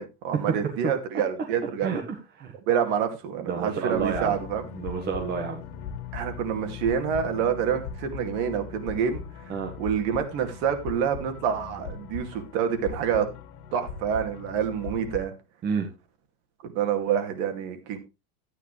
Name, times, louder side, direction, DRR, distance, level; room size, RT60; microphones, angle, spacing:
voice 1, 0.0-1.9 2.7-4.6 6.1-9.5 9.8-13.3 13.7-15.3 16.6-18.0, right 8 dB, 45° right, 6 dB, 2.4 m, -27 dB
voice 2, 1.8-2.5 3.4-4.4 4.7-5.6 9.5-9.7 15.6-15.9, right 6 dB, 20° right, 2 dB, 1.5 m, -30 dB
sound 1, 3.9-15.3, left 7 dB, 80° left, 2.2 m, -39 dB
13.0 x 9.8 x 3.3 m, 0.26 s
supercardioid pair, 175°, 45 cm